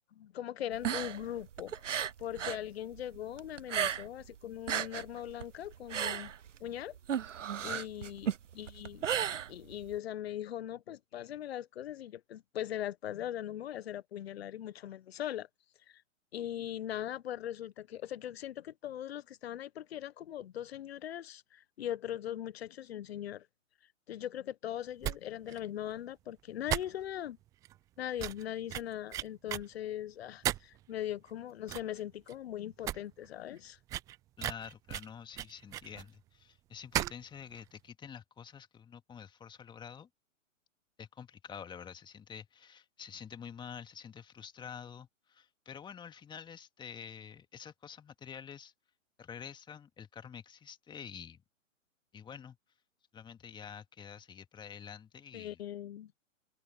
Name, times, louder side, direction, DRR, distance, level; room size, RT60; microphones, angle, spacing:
voice 1, 0.1-1.8 2.2-6.3 6.6-7.0 7.6-9.1 9.5-15.5 15.9-16.0 16.3-23.5 24.1-27.4 28.0-33.8 55.3-56.1, left 11 dB, 50° left, 1.5 m, -40 dB
sound 1, 0.7-2.7 2.9-4.3 4.5-10.0, right 9 dB, 65° right, 1.0 m, -35 dB
sound 2, 25.0-25.2 25.5-25.6 25.9-26.0 26.7-27.3 27.6-27.8 28.2-29.6 30.4-30.8 31.3-31.4 31.7-32.0 32.3-32.4 32.7-33.0 33.2-33.3 33.9-36.0 36.9-37.2 37.5-37.6, right 14 dB, 10° right, 0.5 m, -35 dB
voice 2, 34.4-40.1 41.0-48.7 49.2-51.4 52.1-52.6 53.1-55.6, left 7 dB, 10° left, 2.4 m, -48 dB
figure-of-eight pair, 125°, 40 cm